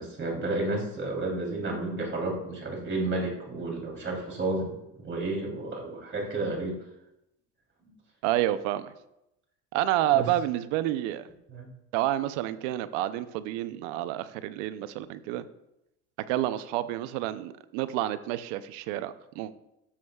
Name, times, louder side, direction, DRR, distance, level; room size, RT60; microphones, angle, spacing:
voice 1, 0.0-6.8 10.1-10.2 11.5-11.7, right 2 dB, 35° right, -1 dB, 3.3 m, -31 dB
voice 2, 8.2-8.9 9.7-11.3 11.9-15.5 16.3-19.5, right 13 dB, 80° right, 14 dB, 0.7 m, -29 dB
13.0 x 7.8 x 2.3 m, 0.85 s
supercardioid pair, 90°, 36 cm